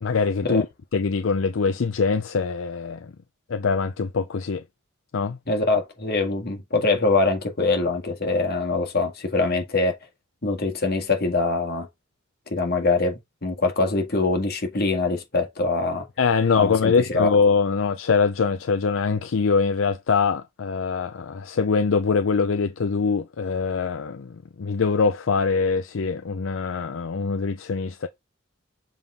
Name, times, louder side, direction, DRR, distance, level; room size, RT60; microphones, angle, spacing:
voice 1, 0.0-0.7 0.9-3.1 3.5-4.6 5.1-5.4 16.2-28.1, left 5 dB, 70° left, 0.5 m, -23 dB
voice 2, 5.5-9.9 10.4-11.9 12.5-16.1 16.6-17.3, left 3 dB, 50° left, 1.8 m, -23 dB
7.1 x 3.8 x 3.6 m
head